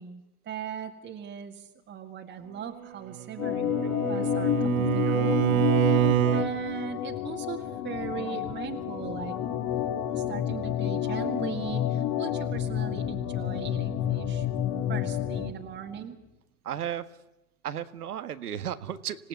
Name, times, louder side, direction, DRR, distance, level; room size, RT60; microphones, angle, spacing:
voice 1, 0.0-9.8 10.1-14.5 14.9-16.2, right 8 dB, 25° right, 2 dB, 2.0 m, -39 dB
Bowed string instrument, 3.1-6.5, right 13 dB, 65° right, 1.0 m, -25 dB
Organ, 3.4-15.5, left 11 dB, 40° left, 2.7 m, -30 dB
voice 2, 16.6-17.1 17.6-19.3, right 10 dB, 80° right, 11 dB, 1.6 m, -34 dB
27.0 x 17.0 x 9.3 m, 0.94 s
hypercardioid pair, 110°, 45 cm